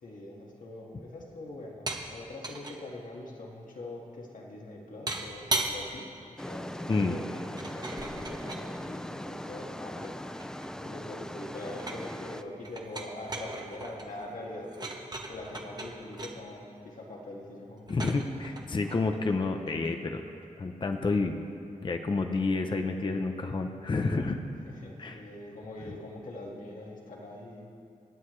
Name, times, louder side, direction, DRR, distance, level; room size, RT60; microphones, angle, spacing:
voice 1, 0.0-15.0 15.3-18.2 24.7-27.7, left 1 dB, 65° left, -2 dB, 1.9 m, -43 dB
sound 1, 1.9-2.1 2.4-2.8 5.1-5.8 7.6-8.7 9.7-10.9 11.2-12.1 12.6-16.3 17.9-19.9, right 2 dB, 30° right, 1.0 m, -37 dB
sound 2, 6.4-12.4, left 1 dB, 5° left, 0.3 m, -40 dB
voice 2, 17.9-20.2 20.6-21.4 21.8-24.4 25.0-25.2, left 3 dB, 35° left, 5 dB, 0.7 m, -29 dB
25.5 x 9.7 x 3.2 m, 2.5 s
wide cardioid pair, 150°, 14 cm